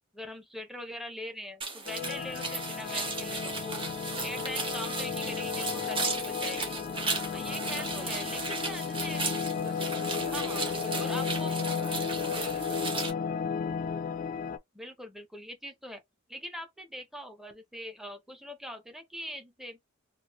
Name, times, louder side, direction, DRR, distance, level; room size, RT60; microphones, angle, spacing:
voice 1, 0.1-3.8 4.2-6.6 7.3-9.2 10.3-11.9 14.7-16.0 16.3-19.8, equal, ahead, 0.7 m, -42 dB
sound 1, 1.6-13.1, right 4 dB, 25° right, 1.0 m, -36 dB
sound 2, 1.9-14.6, left 6 dB, 40° left, 0.3 m, -34 dB
voice 2, 4.1-4.5 7.4-8.1 9.6-13.0, right 2 dB, 40° right, 1.5 m, -46 dB
3.0 x 2.4 x 2.9 m
head